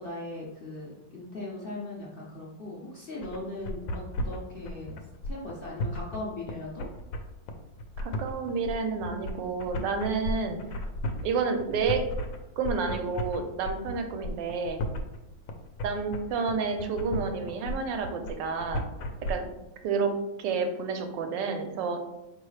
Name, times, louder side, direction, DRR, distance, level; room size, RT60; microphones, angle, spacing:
voice 1, 0.0-4.9 5.3-6.8, left 2 dB, 60° left, -4 dB, 0.6 m, -39 dB
sound 1, 3.2-19.3, left 1 dB, 80° left, 1.3 m, -34 dB
voice 2, 8.0-10.6 11.2-12.1 12.6-14.8 15.8-18.8 19.3-19.4 19.8-20.1 20.4-22.0, right 5 dB, 75° right, 6 dB, 1.3 m, -30 dB
4.6 x 3.2 x 3.2 m, 0.94 s
omnidirectional pair, 2.0 m